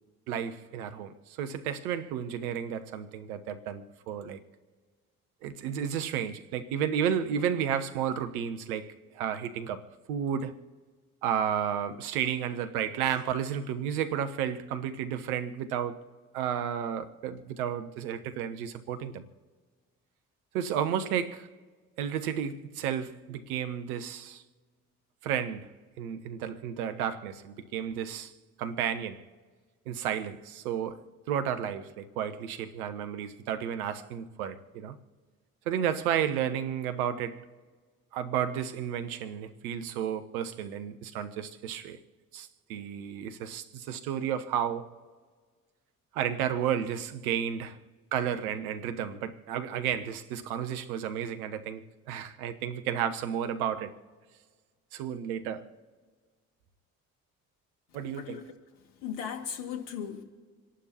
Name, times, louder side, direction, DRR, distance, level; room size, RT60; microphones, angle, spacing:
voice 1, 0.3-4.4 5.4-10.6 11.2-16.0 16.3-19.2 20.5-21.5 22.0-24.4 25.2-28.3 28.6-29.2 29.9-35.0 35.7-37.5 38.1-42.0 42.3-44.9 46.1-47.8 48.1-53.9 54.9-55.7 57.9-58.4, right 9 dB, 80° right, 1.0 m, -32 dB
voice 2, 58.1-58.5 59.0-60.2, left 8 dB, 70° left, 2.2 m, -37 dB
27.5 x 11.5 x 2.9 m
hypercardioid pair, 45°, 43 cm